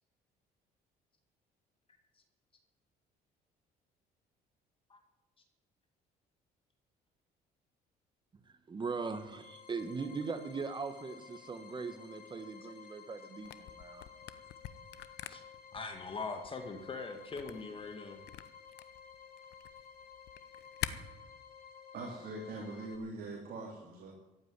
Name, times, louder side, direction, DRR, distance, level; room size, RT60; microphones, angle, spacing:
voice 1, 8.7-14.1, right 4 dB, 25° right, 9 dB, 1.4 m, -40 dB
sound 1, 8.8-23.0, left 7 dB, 65° left, 2.4 m, -54 dB
Camera, 13.4-20.9, left 14 dB, 80° left, 0.9 m, -45 dB
voice 2, 15.7-18.2, left 4 dB, 30° left, 5 dB, 1.8 m, -41 dB
voice 3, 21.9-24.1, right 2 dB, 65° right, -1 dB, 3.0 m, -42 dB
15.0 x 8.7 x 9.6 m, 1.1 s
cardioid pair, 110°, 17 cm